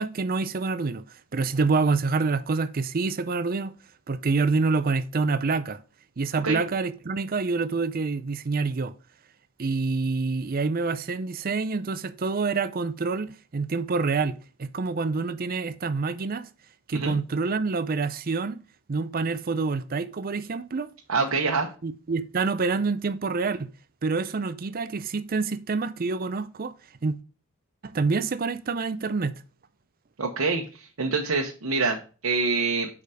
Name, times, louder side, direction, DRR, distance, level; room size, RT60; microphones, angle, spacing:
voice 1, 0.0-3.7 4.1-5.8 6.2-8.9 9.6-16.5 16.9-18.6 18.9-20.9 21.8-23.7 24.0-26.7 27.0-27.2 27.8-29.3, right 4 dB, 40° right, 0.5 m, -27 dB
voice 2, 21.1-21.7 30.2-32.9, right 4 dB, 75° right, 1.0 m, -26 dB
6.8 x 4.9 x 4.9 m
head